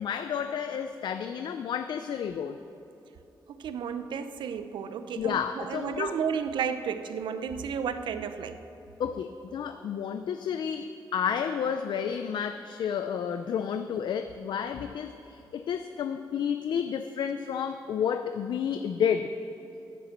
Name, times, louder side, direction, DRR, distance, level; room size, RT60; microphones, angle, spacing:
voice 1, 0.0-2.6 5.2-6.2 9.0-19.3, left 7 dB, 75° left, 9 dB, 0.5 m, -31 dB
voice 2, 3.6-8.6, right 7 dB, 90° right, 10 dB, 0.7 m, -32 dB
11.0 x 10.5 x 7.3 m, 3.0 s
wide cardioid pair, 125°, 8 cm